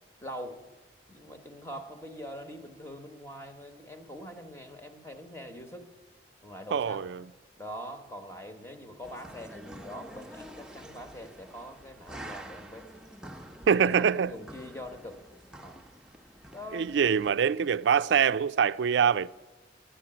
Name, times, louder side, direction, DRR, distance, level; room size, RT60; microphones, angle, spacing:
voice 1, 0.2-0.6 1.1-5.9 6.4-7.1 7.6-12.9 13.7-15.2 15.6-15.8 16.5-16.9, equal, 15° left, 1.1 m, -43 dB
voice 2, 6.7-7.2 13.7-14.3 16.7-19.3, right 7 dB, 75° right, 0.4 m, -24 dB
sound 1, 9.0-17.3, right 1 dB, 5° right, 0.7 m, -48 dB
11.5 x 10.0 x 8.8 m
head